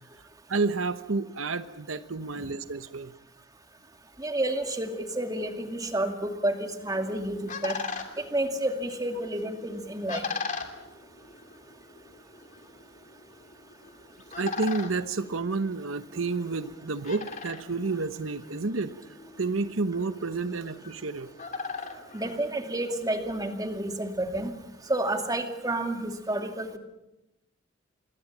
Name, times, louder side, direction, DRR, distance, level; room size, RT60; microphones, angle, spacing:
voice 1, 0.5-3.1 14.4-18.9 19.4-21.3, right 3 dB, 75° right, 11 dB, 1.0 m, -30 dB
voice 2, 4.2-7.7 8.3-10.2 22.1-24.5 24.9-26.8, right 1 dB, 20° right, 5 dB, 2.4 m, -30 dB
sound 1, 6.8-23.1, left 4 dB, 40° left, 3.0 m, -41 dB
27.5 x 22.0 x 7.4 m, 0.96 s
head